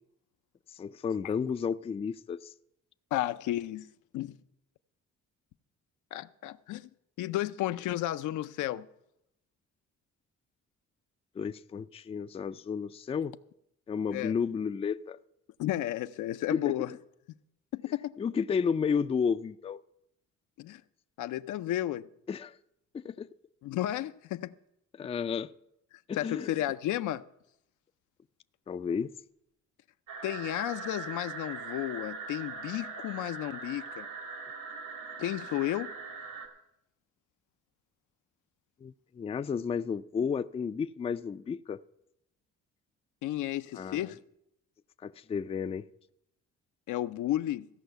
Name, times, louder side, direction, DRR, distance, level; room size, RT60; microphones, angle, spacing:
voice 1, 0.7-2.5 11.4-13.4 13.9-15.2 16.5-16.7 18.2-19.8 22.3-22.6 22.9-23.3 25.0-25.5 26.1-26.6 28.7-29.1 38.8-41.8 43.7-44.1 45.0-45.8, left 6 dB, 20° left, 0.3 m, -32 dB
voice 2, 3.1-3.9 4.1-4.3 6.1-6.9 7.2-8.9 14.1-14.3 15.6-16.9 17.7-18.2 20.6-20.8 21.2-22.1 23.6-24.5 26.1-27.2 30.2-34.1 35.2-35.9 43.2-44.2 46.9-47.7, left 14 dB, 80° left, 0.5 m, -33 dB
sound 1, 30.1-36.5, right 4 dB, 75° right, 2.2 m, -41 dB
15.5 x 5.6 x 8.0 m
cardioid pair, 90°, 30 cm